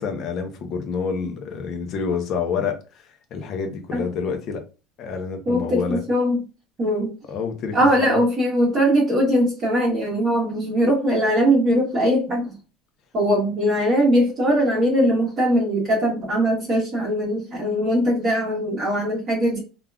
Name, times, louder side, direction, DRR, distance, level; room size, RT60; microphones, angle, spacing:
voice 1, 0.0-4.6 5.0-6.0 7.3-8.2, left 5 dB, 40° left, 0.6 m, -28 dB
voice 2, 5.5-6.4 6.8-7.1 7.7-12.5 13.1-19.6, equal, 25° right, 1.0 m, -20 dB
3.4 x 2.4 x 2.3 m
cardioid pair, 155°, 0 cm